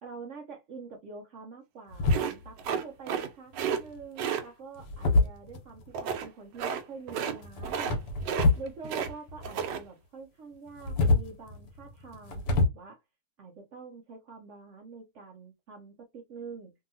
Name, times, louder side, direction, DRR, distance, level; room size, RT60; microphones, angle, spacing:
voice 1, 0.0-8.0 8.6-13.0 13.4-16.7, right 4 dB, 65° right, 0.7 m, -46 dB
sound 1, 1.9-2.6 3.7-4.0 4.8-5.9 7.4-8.7 9.0-9.8 10.7-12.7, left 2 dB, 80° left, 1.4 m, -27 dB
sound 2, 2.1-3.3 3.5-3.8 4.2-4.4 5.9-6.3 6.6-6.8 7.1-7.4 7.6-8.0 8.2-9.1 9.4-9.8, right 7 dB, 85° right, 1.2 m, -31 dB
2.8 x 2.7 x 2.6 m
omnidirectional pair, 1.8 m